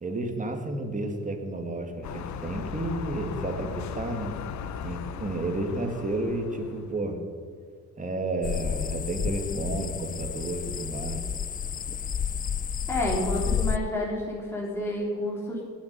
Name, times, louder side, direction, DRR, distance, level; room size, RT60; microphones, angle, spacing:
voice 1, 0.0-4.4 4.8-7.2 8.0-11.3, right 2 dB, 25° right, 4 dB, 2.1 m, -31 dB
sound 1, 2.0-7.0, left 8 dB, 65° left, 0.8 m, -37 dB
sound 2, 8.4-13.8, left 7 dB, 30° left, 0.4 m, -31 dB
voice 2, 12.9-15.6, left 1 dB, 10° left, -4 dB, 3.4 m, -29 dB
19.0 x 7.4 x 5.4 m, 2.2 s
cardioid pair, 90°, 30 cm